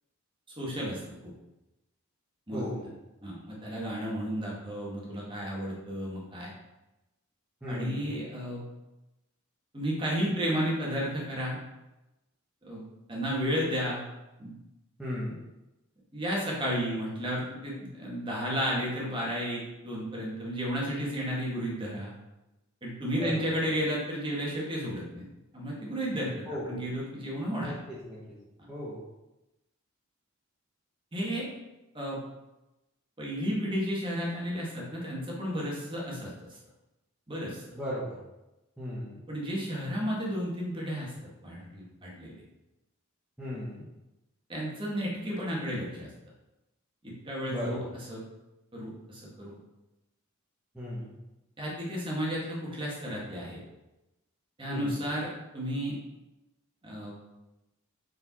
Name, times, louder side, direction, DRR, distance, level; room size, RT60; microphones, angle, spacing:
voice 1, 0.6-1.0 2.5-2.6 3.2-6.5 7.7-8.6 9.7-11.6 12.6-12.8 13.1-14.0 14.4-14.5 16.1-22.1 22.8-25.2 25.5-27.7 31.1-31.5 31.9-32.2 33.2-36.6 37.3-37.6 39.3-41.1 41.4-42.4 44.5-46.1 47.0-47.8 48.1-48.2 48.7-49.6 51.6-53.6 54.6-56.0 56.8-57.2, equal, 25° right, -4 dB, 1.6 m, -33 dB
voice 2, 2.5-2.8 7.6-8.1 15.0-15.4 23.1-23.6 26.1-26.8 27.6-28.4 28.7-29.0 37.7-38.2 38.8-39.2 43.4-43.8 47.5-47.9 50.7-51.1 54.6-55.0, left 1 dB, 5° right, -10 dB, 1.1 m, -36 dB
4.9 x 4.6 x 4.1 m, 0.99 s
head